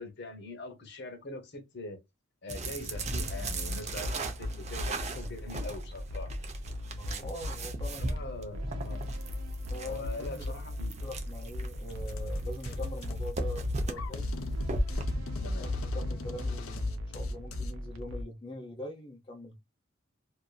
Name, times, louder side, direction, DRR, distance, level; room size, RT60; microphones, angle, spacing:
voice 1, 0.0-2.0 2.4-6.5 8.0-9.0 9.9-11.0 12.1-12.2 15.4-15.7, left 2 dB, 55° left, 0.9 m, -43 dB
sound 1, 2.5-15.0, right 2 dB, 35° right, 0.5 m, -38 dB
sound 2, 2.9-18.2, left 1 dB, 80° right, 0.6 m, -38 dB
voice 2, 6.8-8.0 9.7-10.4 11.0-14.3 15.6-19.6, left 1 dB, 25° left, 0.6 m, -43 dB
sound 3, 11.9-17.7, left 1 dB, 85° left, 0.6 m, -36 dB
2.6 x 2.6 x 2.2 m
head